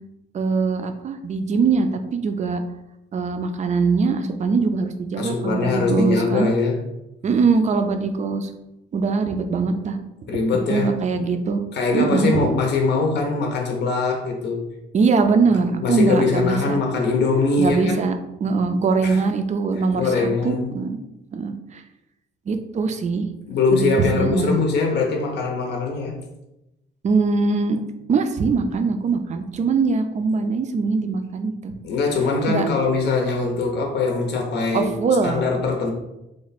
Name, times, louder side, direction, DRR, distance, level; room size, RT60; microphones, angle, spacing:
voice 1, 0.3-2.6 3.1-6.5 7.2-8.5 8.9-10.0 10.7-11.6 11.9-12.3 14.9-16.8 17.6-21.0 21.3-21.8 22.5-23.3 23.7-24.5 27.0-27.8 28.1-31.7 32.5-32.7 34.7-35.5, right 4 dB, 35° right, 7 dB, 0.4 m, -22 dB
voice 2, 5.2-6.8 10.3-10.9 11.7-14.7 15.5-18.0 19.0-19.2 19.9-20.7 23.5-26.2 31.8-34.9 35.2-35.9, left 4 dB, 60° left, 1 dB, 0.6 m, -22 dB
3.1 x 2.2 x 4.0 m, 0.91 s
cardioid pair, 90°, 20 cm